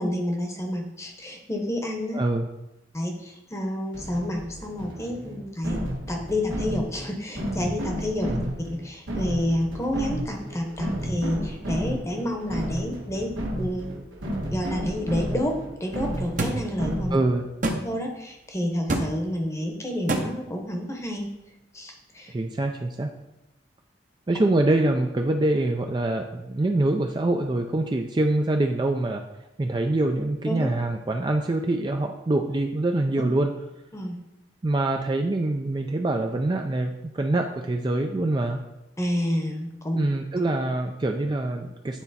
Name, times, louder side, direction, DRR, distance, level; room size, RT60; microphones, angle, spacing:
voice 1, 0.0-2.2 2.9-8.3 8.6-13.3 13.6-13.9 14.5-15.5 15.8-17.2 17.8-21.3 21.7-22.3 30.5-30.6 33.9-34.2 39.0-40.0, equal, 15° left, 2 dB, 0.9 m, -29 dB
voice 2, 2.1-2.5 8.3-8.5 17.1-17.4 22.3-23.1 24.3-29.2 29.6-33.5 34.6-38.6 39.9-42.0, right 2 dB, 25° right, 4 dB, 0.3 m, -25 dB
sound 1, 3.9-17.4, equal, 80° right, 1.5 m, -32 dB
sound 2, 16.4-16.6 17.6-17.8 18.9-19.1 20.1-20.2, right 2 dB, 40° right, 0.8 m, -24 dB
9.1 x 4.2 x 4.1 m, 0.92 s
head